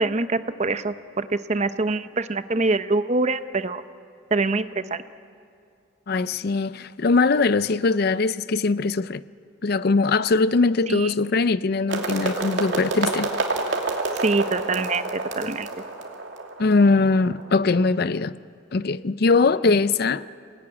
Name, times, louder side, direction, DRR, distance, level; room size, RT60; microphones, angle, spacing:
voice 1, 0.0-3.8 4.3-5.0 10.9-11.1 14.2-15.7, right 3 dB, 35° right, 0.7 m, -24 dB
voice 2, 6.1-9.2 9.6-13.3 16.6-18.4 18.7-20.2, left 3 dB, 50° left, 0.5 m, -21 dB
sound 1, 11.9-17.8, right 3 dB, 65° right, 2.7 m, -28 dB
26.5 x 18.5 x 9.7 m
head